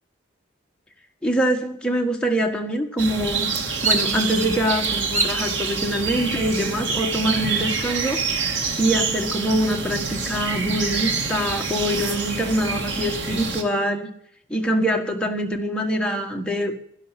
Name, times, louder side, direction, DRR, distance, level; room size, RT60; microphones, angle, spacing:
voice 1, 1.2-3.6 3.8-8.2 8.8-14.1 14.5-16.7, equal, 5° left, 1 dB, 1.5 m, -24 dB
sound 1, 3.0-13.6, right 4 dB, 85° right, 1.9 m, -27 dB
Bird vocalization bird call bird song, 3.8-4.6 5.1-5.5 6.1-6.6 7.8-8.6 8.9-9.0 9.5-10.9, right 3 dB, 40° right, 1.7 m, -27 dB
12.0 x 11.0 x 8.3 m, 0.69 s
head